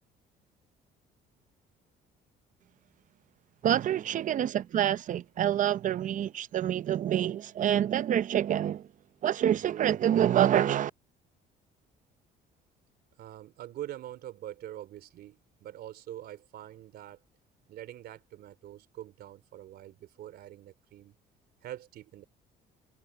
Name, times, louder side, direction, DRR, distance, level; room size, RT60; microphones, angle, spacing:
voice 1, 3.6-8.9 9.2-10.9, right 10 dB, 50° right, 0.7 m, -27 dB
voice 2, 13.2-17.2 17.7-21.1 21.6-22.2, right 12 dB, 70° right, 3.7 m, -44 dB
cardioid pair, 110°, 17 cm